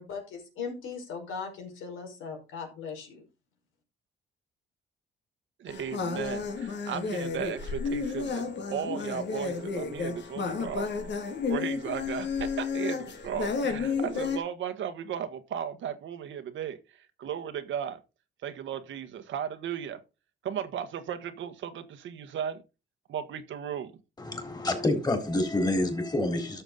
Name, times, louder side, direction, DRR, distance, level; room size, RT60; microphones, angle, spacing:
voice 1, 0.0-3.2, left 5 dB, 85° left, 5.0 m, -39 dB
voice 2, 5.6-10.9 11.5-18.0 18.4-20.0 20.4-22.6 23.1-23.9, right 8 dB, 75° right, 1.5 m, -36 dB
sound 1, 5.7-14.4, left 5 dB, 65° left, 2.4 m, -32 dB
voice 3, 24.2-26.6, left 1 dB, 20° left, 4.0 m, -28 dB
12.5 x 7.1 x 3.9 m
cardioid pair, 90°, 20 cm